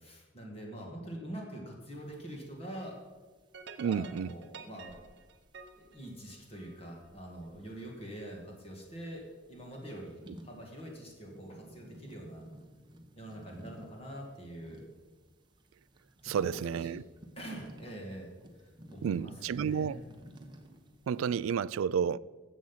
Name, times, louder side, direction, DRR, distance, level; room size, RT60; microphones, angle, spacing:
voice 1, 0.0-3.0 3.8-5.0 5.8-12.4 13.2-14.8 16.2-17.0 17.4-20.0, right 1 dB, 30° left, 2.3 m, -45 dB
sound 1, 1.8-21.4, right 1 dB, 20° right, 0.9 m, -57 dB
sound 2, 3.5-6.9, right 5 dB, 55° right, 0.8 m, -50 dB
voice 2, 3.8-4.3 16.2-17.0 19.0-20.0 21.1-22.2, right 7 dB, 80° right, 0.3 m, -31 dB
13.5 x 7.9 x 5.7 m
head